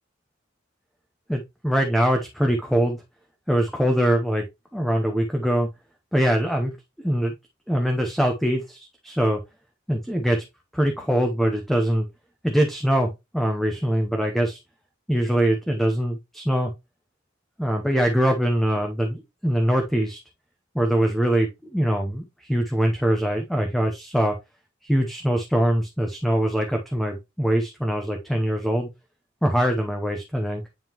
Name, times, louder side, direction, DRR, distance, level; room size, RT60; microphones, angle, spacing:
voice 1, 1.3-3.0 3.5-4.5 4.7-5.7 6.1-6.7 7.0-7.3 7.7-9.4 9.9-10.4 10.7-12.1 12.4-14.6 15.1-16.7 17.6-20.2 20.7-24.4 24.8-28.9 29.4-30.6, equal, ahead, 2 dB, 0.7 m, -23 dB
9.3 x 3.6 x 2.9 m, 0.23 s
head